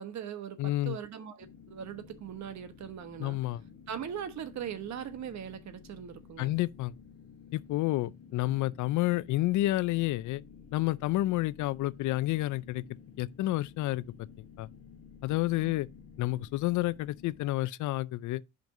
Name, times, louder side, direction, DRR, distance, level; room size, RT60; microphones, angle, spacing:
voice 1, 0.0-3.4 3.9-6.6 15.3-15.8, right 9 dB, 65° right, 1.1 m, -40 dB
voice 2, 0.6-1.0 3.2-3.6 6.4-6.9 7.5-10.4 10.7-12.8 13.2-14.0 14.6-14.7 15.2-15.9 16.2-18.4, left 17 dB, 80° left, 0.5 m, -29 dB
sound 1, 1.4-17.6, left 6 dB, 50° left, 1.2 m, -53 dB
9.1 x 5.2 x 2.6 m
cardioid pair, 90°, 30 cm